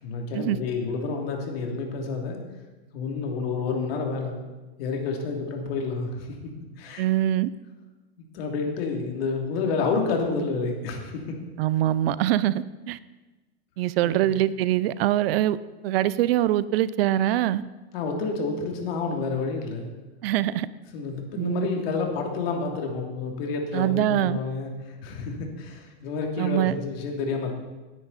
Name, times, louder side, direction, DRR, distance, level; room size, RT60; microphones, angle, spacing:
voice 1, 0.0-2.4 2.9-4.4 4.8-6.4 6.8-7.1 8.3-11.4 14.0-14.3 17.9-19.9 20.9-24.7 25.0-27.5, left 4 dB, 65° left, 2 dB, 2.9 m, -29 dB
voice 2, 7.0-7.5 11.6-13.0 13.8-15.6 15.8-17.6 20.2-20.7 21.3-21.7 23.7-24.4 26.4-26.7, right 13 dB, 65° right, 17 dB, 0.6 m, -23 dB
17.5 x 9.9 x 4.2 m, 1.2 s
supercardioid pair, 145°, 32 cm